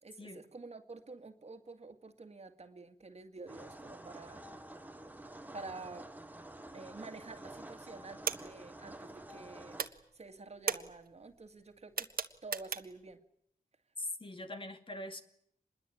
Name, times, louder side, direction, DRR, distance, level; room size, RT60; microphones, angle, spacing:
voice 1, 0.0-4.7 5.5-6.1 6.7-12.1 12.4-13.2, right 3 dB, 45° right, 6 dB, 2.1 m, -49 dB
sound 1, 3.5-9.9, right 1 dB, 10° right, 1.6 m, -49 dB
sound 2, 7.0-7.5 7.7-9.5 9.7-13.1, right 6 dB, 85° right, 1.6 m, -39 dB
voice 2, 14.0-15.2, left 1 dB, 35° left, 6 dB, 2.4 m, -42 dB
26.5 x 21.5 x 8.7 m, 0.71 s
wide cardioid pair, 120°, 15 cm